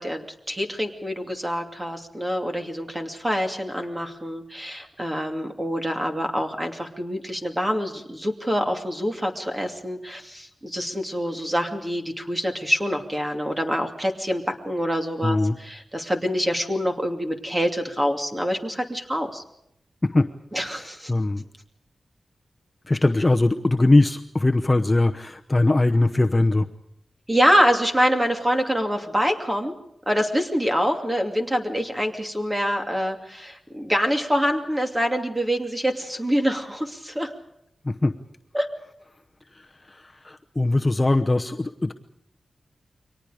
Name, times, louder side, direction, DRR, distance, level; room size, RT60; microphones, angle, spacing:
voice 1, 0.0-19.4 20.5-21.1 27.3-29.7 30.1-37.3 38.5-38.7, equal, 15° right, 4 dB, 2.6 m, -25 dB
voice 2, 15.2-15.6 20.0-20.3 20.7-21.5 22.9-26.7 37.8-38.1 39.5-41.9, left 2 dB, 20° left, 5 dB, 0.9 m, -21 dB
29.5 x 24.0 x 5.0 m, 0.77 s
wide cardioid pair, 140°, 0 cm